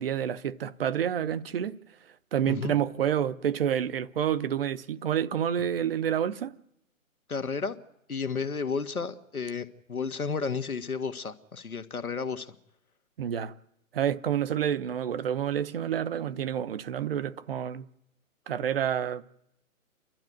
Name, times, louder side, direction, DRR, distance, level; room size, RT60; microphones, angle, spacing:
voice 1, 0.0-1.7 2.3-6.5 13.2-13.5 13.9-17.8 18.5-19.2, right 9 dB, 40° right, 0.9 m, -28 dB
voice 2, 7.3-7.8 8.1-12.5, left 5 dB, 85° left, 1.8 m, -32 dB
29.5 x 12.0 x 9.3 m
figure-of-eight pair, 135°, 42 cm